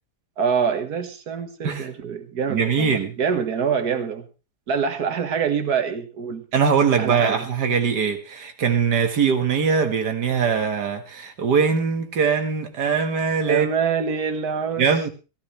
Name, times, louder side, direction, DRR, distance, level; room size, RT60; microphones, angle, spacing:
voice 1, 0.4-4.3 4.7-6.4 7.0-7.4 13.5-15.1, right 6 dB, 70° right, 8 dB, 2.0 m, -25 dB
voice 2, 2.5-3.1 6.5-13.7 14.8-15.1, right 6 dB, 85° right, 6 dB, 2.3 m, -21 dB
15.5 x 15.0 x 3.2 m, 0.32 s
omnidirectional pair, 1.7 m